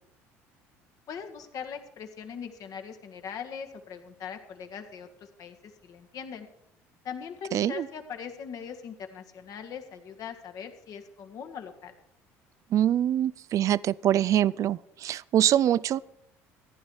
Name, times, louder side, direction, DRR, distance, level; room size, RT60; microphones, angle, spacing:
voice 1, 1.1-6.5 7.0-11.9, left 7 dB, 55° left, 6 dB, 1.8 m, -41 dB
voice 2, 7.5-7.9 12.7-16.0, right 11 dB, 50° right, 21 dB, 0.4 m, -24 dB
15.0 x 10.0 x 4.8 m, 0.78 s
hypercardioid pair, 70°, 7 cm